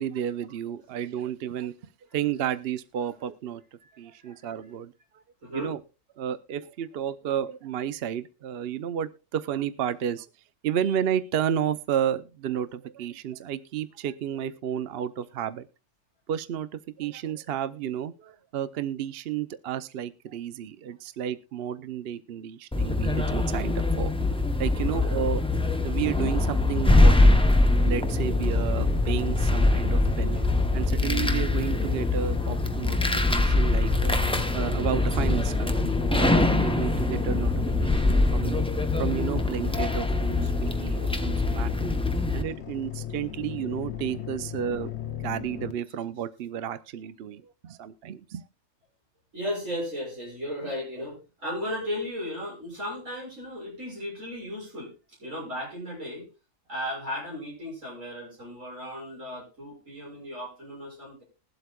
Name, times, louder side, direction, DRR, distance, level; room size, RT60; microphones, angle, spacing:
voice 1, 0.0-1.7 2.1-3.6 4.0-4.9 5.5-5.8 6.2-10.3 10.6-15.7 16.3-24.1 24.6-25.4 25.8-27.4 27.8-30.4 30.7-34.2 34.5-38.6 39.0-41.9 42.3-44.9 45.2-48.4, right 9 dB, 60° right, 14 dB, 0.8 m, -32 dB
voice 2, 3.8-4.5 5.4-5.7 24.8-25.2 49.3-56.3 56.7-61.2, left 1 dB, 90° right, -3 dB, 7.1 m, -36 dB
sound 1, 22.7-42.4, left 2 dB, 5° left, 0.4 m, -23 dB
sound 2, 27.7-45.7, left 9 dB, 65° left, 1.0 m, -38 dB
21.5 x 7.9 x 2.3 m, 0.33 s
omnidirectional pair, 1.3 m